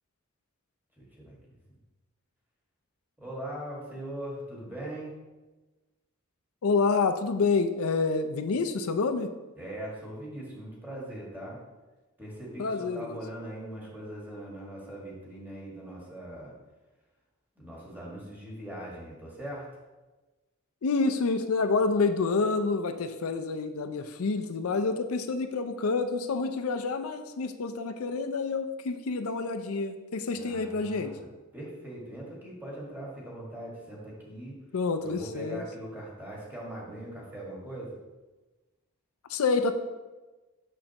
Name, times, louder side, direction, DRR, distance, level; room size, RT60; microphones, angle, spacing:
voice 1, 1.0-1.4 3.2-5.1 9.5-11.6 12.2-16.5 17.6-19.7 30.3-31.2 31.5-34.6 35.0-38.0, right 1 dB, 10° right, -4 dB, 1.7 m, -41 dB
voice 2, 6.6-9.3 12.6-13.2 20.8-31.2 34.7-35.6 39.3-39.7, left 4 dB, 85° left, 7 dB, 0.5 m, -28 dB
6.4 x 6.3 x 2.9 m, 1.2 s
head